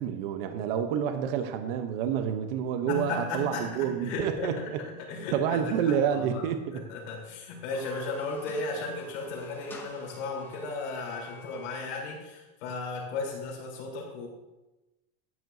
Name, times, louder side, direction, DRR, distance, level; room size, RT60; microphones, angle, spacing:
voice 1, 0.0-4.8 5.3-6.8, right 8 dB, 55° right, 8 dB, 0.9 m, -29 dB
voice 2, 2.9-6.4 6.7-14.3, left 3 dB, 75° left, -2 dB, 3.6 m, -35 dB
sound 1, 7.5-11.9, left 2 dB, 5° left, 0.6 m, -50 dB
12.0 x 9.2 x 2.7 m, 1.1 s
supercardioid pair, 175°, 34 cm